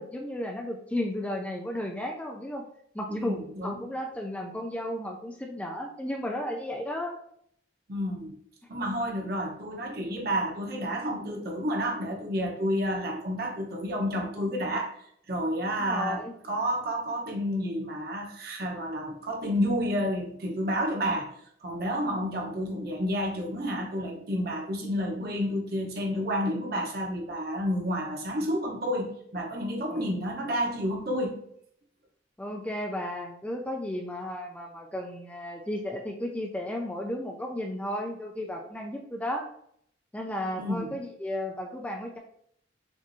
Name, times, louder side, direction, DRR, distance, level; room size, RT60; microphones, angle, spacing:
voice 1, 0.0-2.6 2.9-7.1 15.7-16.3 29.9-30.1 32.4-39.5 40.1-42.2, left 1 dB, 5° left, 1 dB, 0.3 m, -34 dB
voice 2, 3.1-3.9 7.9-8.3 8.7-16.2 16.5-21.3 21.6-31.4 40.6-41.0, equal, 55° right, 0 dB, 1.0 m, -30 dB
6.0 x 2.6 x 2.7 m, 0.68 s
head